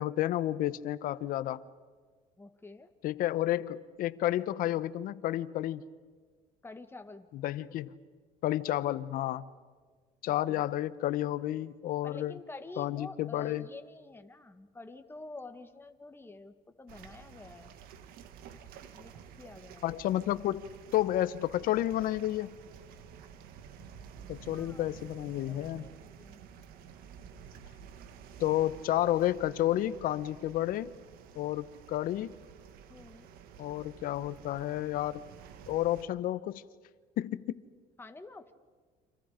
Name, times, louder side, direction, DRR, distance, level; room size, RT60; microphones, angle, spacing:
voice 1, 0.0-1.6 3.0-5.8 7.3-8.0 8.4-9.4 10.2-12.3 12.8-13.7 19.8-22.5 24.3-25.9 28.4-30.9 31.3-32.3 33.6-35.2 35.7-36.6 37.2-37.6, left 13 dB, 70° left, 15 dB, 1.0 m, -31 dB
voice 2, 2.4-2.9 6.6-7.3 10.5-10.7 12.0-17.7 18.9-20.0 24.5-24.8 25.5-26.4 32.9-33.3 38.0-38.5, left 3 dB, 15° left, 7 dB, 1.9 m, -48 dB
sound 1, 16.9-36.0, right 7 dB, 80° right, 1.6 m, -51 dB
30.0 x 26.5 x 5.1 m, 1.5 s
cardioid pair, 100°, 15 cm